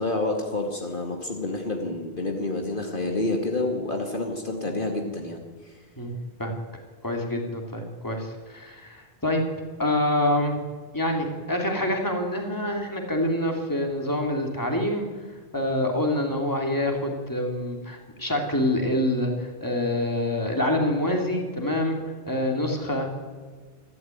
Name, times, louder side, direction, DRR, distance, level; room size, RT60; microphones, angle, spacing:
voice 1, 0.0-5.7, left 2 dB, 55° left, 2 dB, 2.5 m, -28 dB
voice 2, 7.0-9.4 9.8-10.6 10.9-15.1 15.5-22.0 22.3-23.3, left 1 dB, 20° left, 1 dB, 3.4 m, -26 dB
27.0 x 13.0 x 9.5 m, 1.5 s
omnidirectional pair, 1.0 m